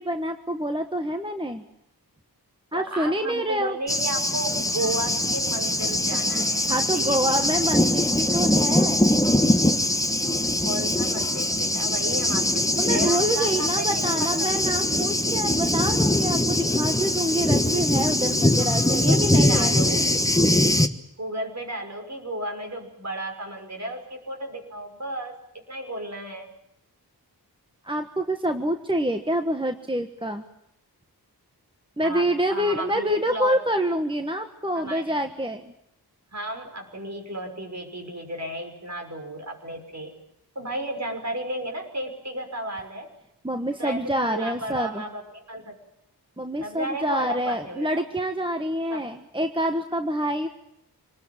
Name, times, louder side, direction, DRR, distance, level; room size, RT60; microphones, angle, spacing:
voice 1, 0.0-1.6 2.7-3.8 6.7-9.1 12.8-19.8 27.8-30.4 32.0-35.7 43.4-45.0 46.4-50.5, right 1 dB, 15° right, 6 dB, 1.4 m, -27 dB
voice 2, 2.7-7.5 10.6-14.5 18.7-20.1 21.2-25.4 25.7-26.5 32.0-33.6 34.7-35.2 36.3-40.2 40.5-43.1 43.8-45.8 46.6-48.0 48.9-49.1, right 1 dB, 45° right, 4 dB, 6.0 m, -33 dB
Thunder, 3.9-20.9, left 1 dB, 10° left, 1.4 m, -22 dB
26.0 x 20.0 x 8.9 m, 0.81 s
wide cardioid pair, 80°, 39 cm